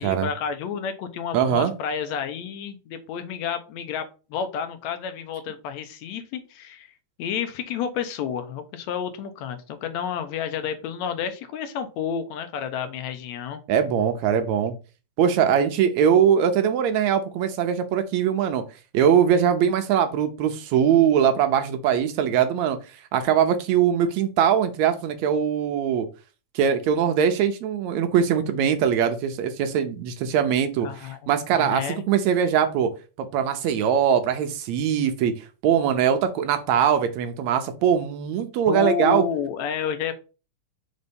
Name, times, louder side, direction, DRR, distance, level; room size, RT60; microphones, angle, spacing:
voice 1, 0.0-6.9 7.2-13.6 30.8-31.2 31.5-32.0 38.7-40.1, left 7 dB, 75° left, 1.9 m, -30 dB
voice 2, 1.3-1.7 13.7-14.7 15.2-18.6 18.9-22.8 23.1-26.1 26.6-32.9 33.3-39.2, right 8 dB, 75° right, 2.0 m, -21 dB
5.3 x 4.0 x 5.2 m
omnidirectional pair, 3.4 m